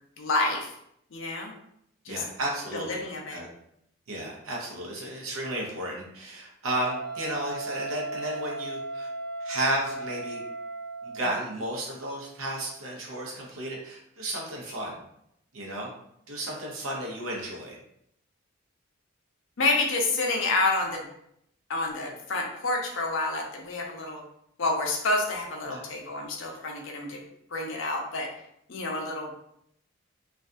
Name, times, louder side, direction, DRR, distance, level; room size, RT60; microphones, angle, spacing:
voice 1, 0.2-0.7 1.1-1.5 2.0-2.2 2.7-3.4 19.6-21.0 21.7-24.2 24.6-27.2 27.5-28.3 28.7-29.3, left 2 dB, 65° left, 0 dB, 0.5 m, -28 dB
voice 2, 2.1-3.0 3.3-3.5 4.1-9.1 9.4-10.4 11.0-15.0 15.5-15.9 16.3-17.8 25.7-25.8, right 1 dB, 85° right, -2 dB, 0.8 m, -33 dB
Wind instrument woodwind instrument, 6.7-11.4, right 2 dB, 60° right, 0.4 m, -36 dB
2.5 x 2.3 x 2.5 m, 0.76 s
head